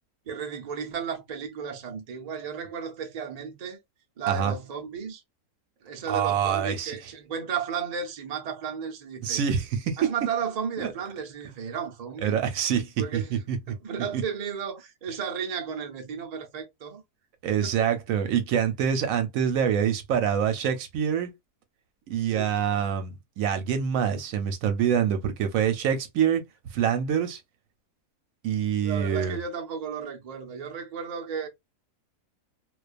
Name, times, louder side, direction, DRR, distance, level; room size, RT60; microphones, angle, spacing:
voice 1, 0.3-3.8 4.2-5.2 5.8-9.4 10.0-12.4 13.0-13.4 13.7-17.0 17.6-17.9 22.2-22.6 28.8-31.5, right 7 dB, 90° right, 0.3 m, -34 dB
voice 2, 6.1-7.0 9.2-10.0 10.8-10.9 12.2-13.7 14.1-14.2 17.4-21.3 22.1-26.4 26.7-27.4 28.4-29.4, right 8 dB, 70° right, 0.9 m, -26 dB
2.4 x 2.3 x 2.4 m
omnidirectional pair, 1.7 m